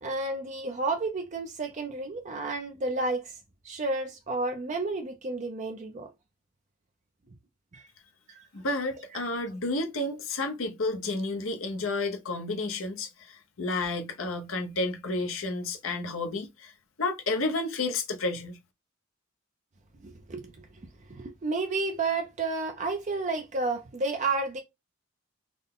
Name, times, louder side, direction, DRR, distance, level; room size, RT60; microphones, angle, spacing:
voice 1, 0.0-3.4 3.6-6.1 7.7-7.9 20.0-20.5 21.1-24.6, right 3 dB, 35° right, 0.5 m, -31 dB
voice 2, 8.5-16.7 17.0-18.6, left 2 dB, 90° left, 0.8 m, -31 dB
3.8 x 2.2 x 3.6 m
head